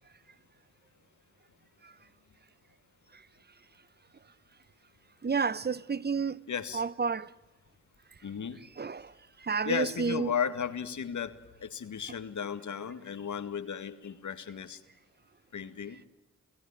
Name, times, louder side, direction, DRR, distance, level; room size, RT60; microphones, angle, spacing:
voice 1, 5.2-6.4 6.7-7.3 8.8-9.1 9.4-10.3, right 5 dB, 30° right, 0.9 m, -30 dB
voice 2, 6.5-6.8 8.2-8.6 9.6-14.8 15.5-16.0, left 7 dB, 60° left, 2.0 m, -35 dB
30.0 x 17.0 x 10.0 m
supercardioid pair, 45°, 33 cm